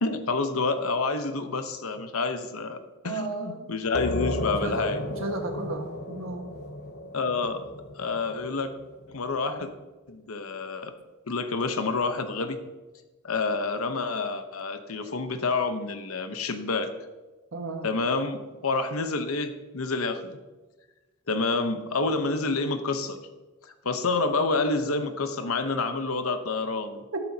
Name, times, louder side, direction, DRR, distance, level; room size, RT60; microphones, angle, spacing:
voice 1, 0.0-2.8 3.0-5.0 7.1-7.7 8.0-8.7 9.1-9.7 10.1-10.9 11.3-12.6 13.2-16.9 17.8-20.4 21.3-23.2 23.6-27.0, left 3 dB, 80° left, 9 dB, 1.0 m, -28 dB
voice 2, 3.0-3.7 4.6-6.5 17.5-17.9 27.1-27.2, right 3 dB, 65° right, 3 dB, 1.6 m, -34 dB
sound 1, 3.9-9.3, left 2 dB, 50° left, 0.9 m, -34 dB
12.0 x 11.5 x 2.9 m, 1.2 s
head